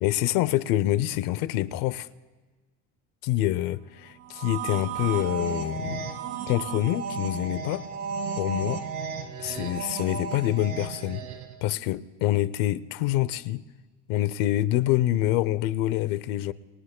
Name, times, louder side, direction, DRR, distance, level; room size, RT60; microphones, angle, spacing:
voice 1, 0.0-2.1 3.2-6.1 6.5-7.8 8.4-8.8 9.4-11.2 11.6-13.6 14.1-16.5, left 14 dB, 60° left, 0.7 m, -26 dB
sound 1, 4.3-11.6, right 6 dB, 70° right, 2.1 m, -34 dB
29.5 x 20.5 x 2.2 m
cardioid pair, 155°, 37 cm